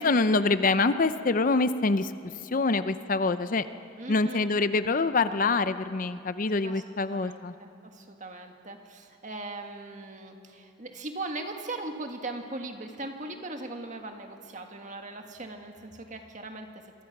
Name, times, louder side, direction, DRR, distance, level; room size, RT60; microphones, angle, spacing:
voice 1, 0.0-2.1 2.4-3.7 4.1-7.5, left 3 dB, 40° left, 12 dB, 0.6 m, -25 dB
voice 2, 4.0-4.5 6.6-17.0, right 2 dB, 35° right, 4 dB, 1.8 m, -39 dB
26.5 x 23.5 x 6.0 m, 2.6 s
head